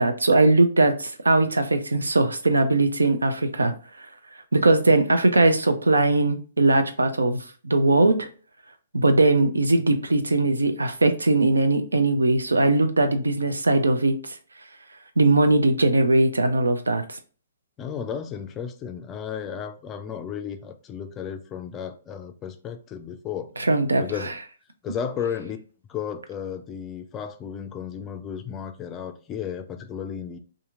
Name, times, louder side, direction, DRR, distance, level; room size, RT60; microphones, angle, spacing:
voice 1, 0.0-3.7 4.5-7.4 7.6-8.3 8.9-14.3 15.2-17.2 23.6-24.3, right 2 dB, 85° right, 0.5 m, -20 dB
voice 2, 17.8-23.5 24.0-24.4 24.8-25.6 25.9-30.4, left 8 dB, 20° left, 0.4 m, -33 dB
2.8 x 2.5 x 3.6 m
figure-of-eight pair, 125°, 0 cm